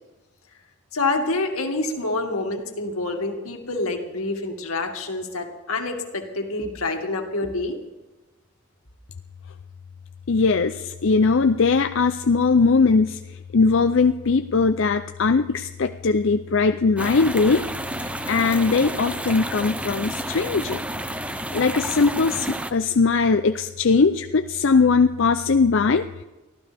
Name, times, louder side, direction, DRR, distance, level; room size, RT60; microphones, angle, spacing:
voice 1, 0.9-7.8, left 2 dB, 85° left, 3 dB, 2.3 m, -27 dB
voice 2, 10.3-17.7 17.9-20.8 21.5-26.2, left 4 dB, 60° left, 8 dB, 0.5 m, -20 dB
sound 1, 17.0-22.7, right 1 dB, 5° right, 0.6 m, -30 dB
24.0 x 15.0 x 3.5 m, 1.1 s
head